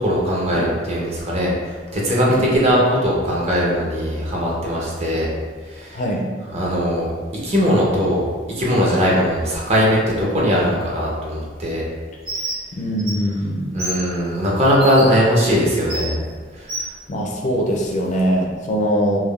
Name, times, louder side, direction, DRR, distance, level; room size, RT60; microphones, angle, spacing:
voice 1, 0.0-5.3 5.6-6.0 6.5-7.1 7.4-8.3 8.6-11.8 13.7-16.2 16.6-16.9, equal, 40° right, -4 dB, 0.7 m, -19 dB
voice 2, 5.9-6.2 12.7-13.7 17.1-19.2, equal, 45° left, 0 dB, 0.4 m, -22 dB
Bird, 12.3-12.6 13.0-13.1 13.8-14.0 14.8-15.0 15.9-16.1 16.7-16.9, right 1 dB, 60° right, 0.9 m, -27 dB
3.4 x 2.1 x 2.3 m, 1.5 s
head